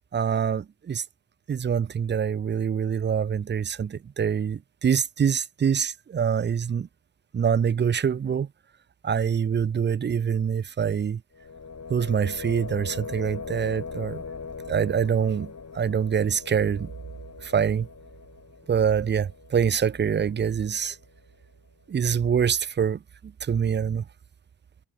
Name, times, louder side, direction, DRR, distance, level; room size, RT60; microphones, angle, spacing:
voice 1, 0.1-1.0 1.5-6.9 7.3-8.5 9.0-11.2 11.9-14.2 14.7-16.9 17.4-17.9 18.7-21.0 21.9-24.0, right 7 dB, 25° right, 0.3 m, -25 dB
sound 1, 11.3-21.2, left 5 dB, 35° left, 2.3 m, -40 dB
cardioid pair, 85°, 48 cm